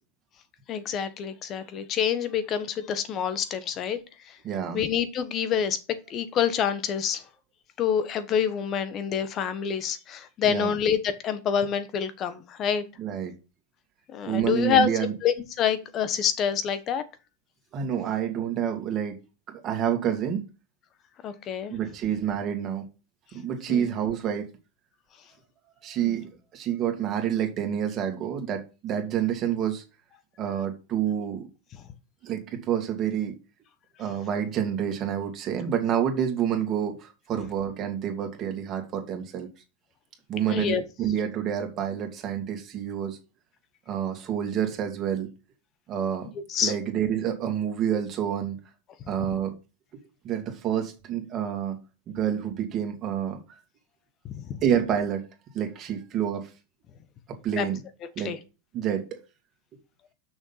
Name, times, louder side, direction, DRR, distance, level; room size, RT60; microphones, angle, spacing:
voice 1, 0.7-4.0 4.3-4.4 4.7-5.8 6.1-7.2 7.8-12.8 14.1-14.9 15.2-17.0 21.2-21.8 23.7-23.9 26.0-26.2 40.5-40.8 46.5-46.7 54.2-54.6 57.6-57.7 58.2-58.4, left 8 dB, 40° left, 12 dB, 1.3 m, -27 dB
voice 2, 4.4-4.8 10.4-10.7 13.0-13.3 14.3-15.1 17.7-19.2 19.5-20.5 21.7-22.9 23.3-24.5 25.8-29.8 30.4-31.5 32.2-33.4 34.0-39.5 40.3-43.2 43.9-45.3 45.9-46.3 46.6-48.6 49.1-49.5 50.2-51.8 52.1-53.4 54.6-55.2 55.5-56.5 57.3-57.8 58.2-58.3 58.7-59.2, right 9 dB, 40° right, 4 dB, 2.6 m, -28 dB
6.4 x 6.2 x 5.7 m, 0.31 s
hypercardioid pair, 110°, 0 cm